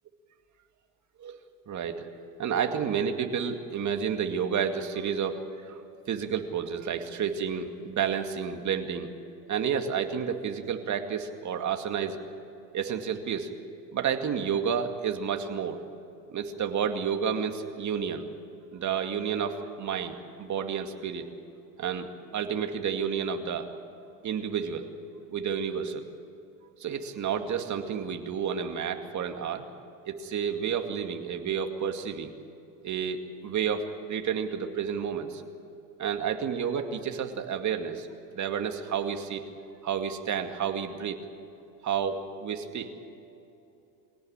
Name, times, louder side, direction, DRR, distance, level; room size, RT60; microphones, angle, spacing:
voice 1, 1.7-2.1 2.4-5.8 6.1-9.1 9.5-12.2 12.7-13.5 13.9-15.8 16.3-18.3 18.7-21.3 21.8-23.7 24.2-24.9 25.3-26.0 26.8-29.6 30.1-32.3 32.8-35.4 36.0-38.1 38.3-39.4 39.8-41.2 41.8-42.9, right 7 dB, 35° right, 5 dB, 2.3 m, -30 dB
23.5 x 18.0 x 8.9 m, 2.8 s
hypercardioid pair, 95°, 49 cm